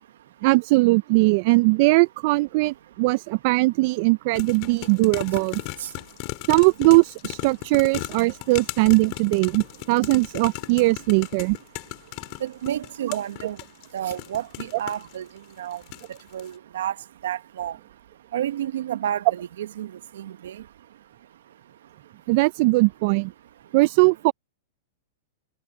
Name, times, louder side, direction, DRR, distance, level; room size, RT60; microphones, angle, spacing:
voice 1, 0.4-5.6 6.5-11.6 13.1-13.2 22.3-23.3 23.7-24.3, right 24 dB, 50° right, 0.4 m, -20 dB
sound 1, 4.3-15.1 15.7-16.1 16.4-16.5, left 27 dB, 45° left, 3.6 m, -36 dB
voice 2, 12.4-13.6 13.9-15.3 15.6-15.8 16.3-16.9 17.2-17.8 18.3-20.6, right 11 dB, 75° right, 1.1 m, -30 dB
hypercardioid pair, 130°, 0 cm